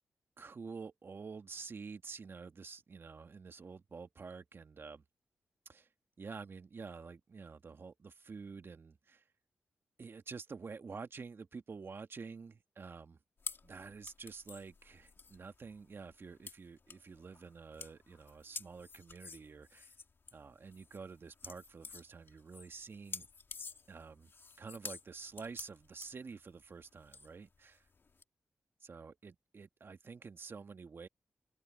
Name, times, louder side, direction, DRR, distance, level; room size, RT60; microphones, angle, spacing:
voice 1, 0.4-5.0 5.7-5.9 6.2-9.2 10.0-13.2 13.6-19.9 20.3-23.3 23.9-24.3 24.6-27.9 28.8-31.1, right 5 dB, 55° right, 1.8 m, -49 dB
sound 1, 13.4-28.2, left 4 dB, 50° left, 2.3 m, -50 dB
cardioid pair, 50°, 5 cm